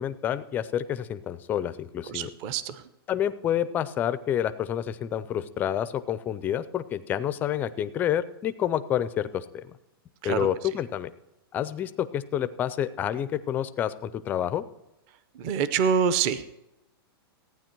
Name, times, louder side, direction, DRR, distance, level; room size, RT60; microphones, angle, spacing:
voice 1, 0.0-2.3 3.1-9.6 10.2-11.1 11.5-14.6, left 10 dB, 15° left, 13 dB, 0.4 m, -28 dB
voice 2, 2.1-2.8 10.2-10.5 15.4-16.5, right 6 dB, 30° right, 14 dB, 0.6 m, -26 dB
15.0 x 9.4 x 4.5 m, 0.92 s
supercardioid pair, 165°, 13 cm